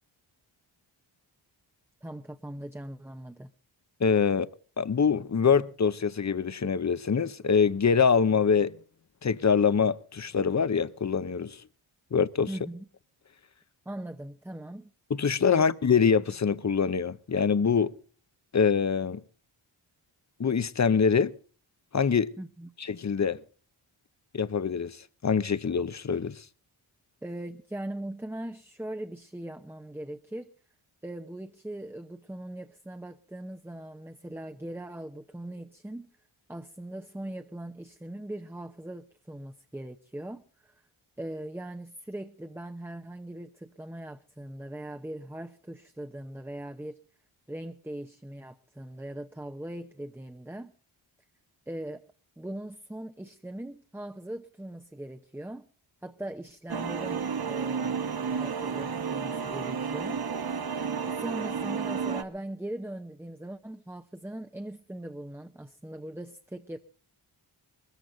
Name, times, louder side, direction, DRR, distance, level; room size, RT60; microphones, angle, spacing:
voice 1, 2.0-3.5 12.5-12.9 13.9-14.9 15.5-15.7 22.4-22.7 27.2-30.5 31.0-36.1 36.5-40.8 41.2-47.0 47.5-50.7 51.7-52.0 52.4-55.7 56.0-58.0 58.3-60.2 61.1-66.8, right 1 dB, 5° right, 0.7 m, -40 dB
voice 2, 4.0-4.5 4.8-8.8 9.2-11.6 12.1-12.5 15.1-17.9 18.5-19.2 20.4-21.3 21.9-22.3 22.8-23.4 24.3-26.4, left 6 dB, 35° left, 0.7 m, -24 dB
sound 1, 56.7-62.2, right 6 dB, 50° right, 1.2 m, -31 dB
21.0 x 14.0 x 3.9 m
wide cardioid pair, 70°, 49 cm